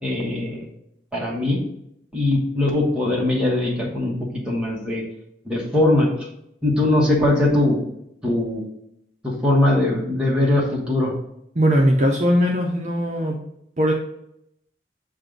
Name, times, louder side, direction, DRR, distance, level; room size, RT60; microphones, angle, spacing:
voice 1, 0.0-0.7 1.1-1.6 2.1-5.0 5.4-6.1 6.6-7.8 8.2-8.6 9.2-11.1, left 1 dB, 5° right, -4 dB, 1.2 m, -21 dB
voice 2, 11.5-13.4 13.8-13.9, equal, 40° right, 0 dB, 0.6 m, -19 dB
7.4 x 2.5 x 5.0 m, 0.78 s
head